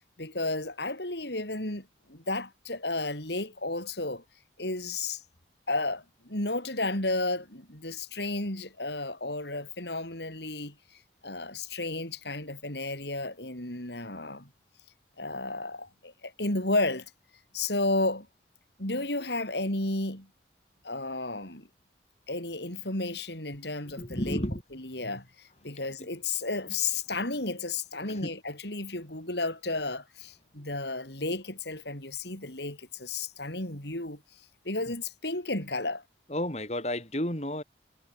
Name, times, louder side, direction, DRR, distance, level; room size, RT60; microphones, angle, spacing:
voice 1, 0.2-4.2 4.6-5.2 5.7-10.7 11.2-14.5 15.2-17.1 17.5-18.3 18.8-20.3 20.8-21.7 22.3-24.4 24.7-34.2 34.6-36.0, left 2 dB, 70° left, 6.8 m, -32 dB
voice 2, 24.0-24.6 26.0-26.1 28.0-28.3 36.3-37.6, left 1 dB, 35° left, 6.2 m, -32 dB
head